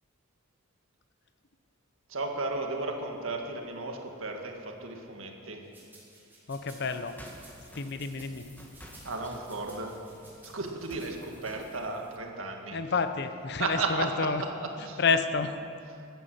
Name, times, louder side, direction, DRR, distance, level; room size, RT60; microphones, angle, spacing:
voice 1, 2.1-5.6 9.0-10.0 10.4-12.8 13.6-15.0, right 3 dB, 75° right, 2 dB, 1.9 m, -34 dB
sound 1, 5.7-11.1, right 2 dB, 10° right, 4.0 m, -55 dB
voice 2, 6.5-7.1 7.7-8.4 12.7-14.4 15.0-15.5, left 4 dB, 55° left, 9 dB, 0.8 m, -29 dB
sound 2, 6.8-12.2, equal, 10° left, 1.5 m, -51 dB
15.0 x 9.6 x 7.8 m, 2.5 s
head